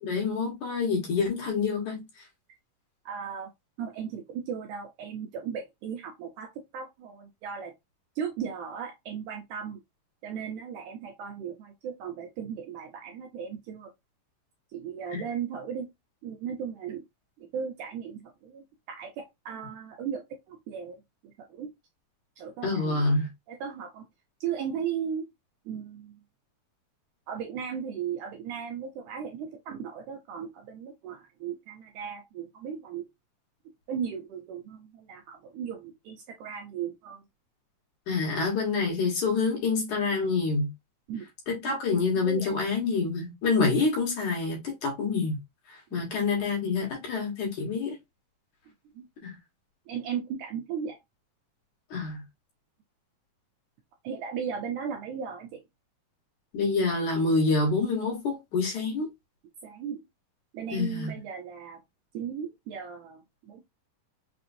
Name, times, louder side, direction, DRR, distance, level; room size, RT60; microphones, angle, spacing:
voice 1, 0.0-2.0 15.1-15.2 22.6-23.3 38.1-40.7 41.5-45.4 45.9-48.0 49.2-49.4 51.9-52.2 56.5-59.1 60.7-61.1, left 4 dB, 60° left, 2.6 m, -27 dB
voice 2, 3.0-3.5 3.8-7.7 8.2-9.8 10.2-13.9 14.7-15.9 16.2-17.0 17.4-21.7 22.4-23.1 23.5-24.0 24.4-25.3 25.7-26.2 27.3-33.1 33.9-37.2 41.1-41.3 41.6-41.8 42.1-42.5 45.9-46.0 49.0-49.1 49.9-51.0 54.0-55.6 59.6-60.0 60.5-61.8 62.1-63.6, right 7 dB, 75° right, 1.9 m, -36 dB
5.8 x 2.9 x 2.6 m
omnidirectional pair, 4.1 m